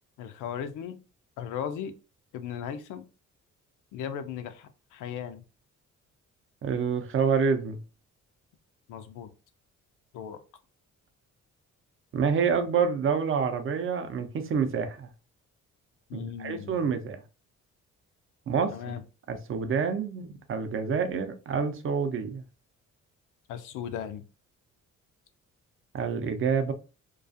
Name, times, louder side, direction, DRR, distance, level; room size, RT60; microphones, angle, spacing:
voice 1, 0.2-1.0 1.4-1.9 2.3-3.0 3.9-5.4 8.9-9.3 10.1-10.4 16.1-16.7 18.7-19.0 23.5-24.2, left 8 dB, 85° left, 0.5 m, -37 dB
voice 2, 6.6-7.8 12.1-15.1 16.1-17.2 18.5-19.0 19.3-22.4 25.9-26.7, right 6 dB, 45° right, 0.5 m, -27 dB
2.4 x 2.3 x 2.5 m
cardioid pair, 90°, 30 cm